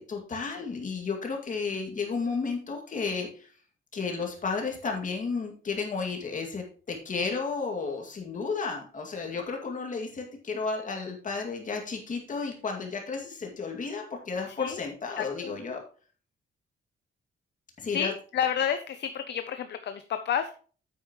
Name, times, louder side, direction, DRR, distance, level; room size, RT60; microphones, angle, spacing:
voice 1, 0.0-3.5 3.9-15.8 17.8-18.1, left 4 dB, 40° left, 1 dB, 2.3 m, -33 dB
voice 2, 15.2-15.5 17.9-20.5, left 8 dB, 55° left, 9 dB, 0.7 m, -30 dB
9.0 x 8.5 x 3.1 m, 0.40 s
wide cardioid pair, 160°, 21 cm